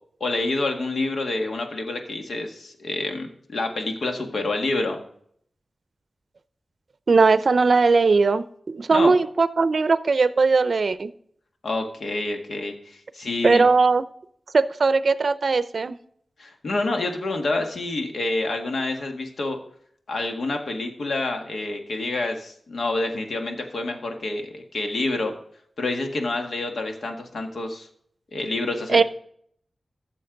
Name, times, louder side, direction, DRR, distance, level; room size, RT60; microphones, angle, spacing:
voice 1, 0.2-5.0 8.9-9.1 11.6-13.6 16.4-19.6 20.1-25.3 25.8-27.9 28.3-29.0, left 2 dB, 85° left, 4 dB, 1.7 m, -28 dB
voice 2, 7.1-11.1 13.4-14.0 14.5-16.0 28.9-29.0, right 4 dB, 60° right, 14 dB, 0.5 m, -19 dB
13.0 x 7.0 x 3.9 m, 0.65 s
wide cardioid pair, 85°, 0 cm